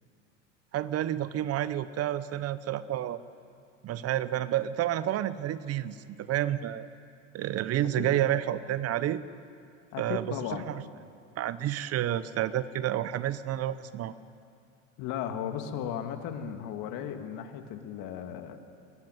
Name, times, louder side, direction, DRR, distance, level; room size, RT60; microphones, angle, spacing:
voice 1, 0.7-3.2 3.8-6.9 7.3-9.2 10.0-10.3 10.7-10.8 11.4-14.1, right 12 dB, 40° right, 15 dB, 0.9 m, -30 dB
voice 2, 9.9-10.7 15.0-18.6, left 9 dB, 55° left, 6 dB, 2.3 m, -36 dB
22.5 x 17.5 x 9.3 m, 2.4 s
hypercardioid pair, 90°, 38 cm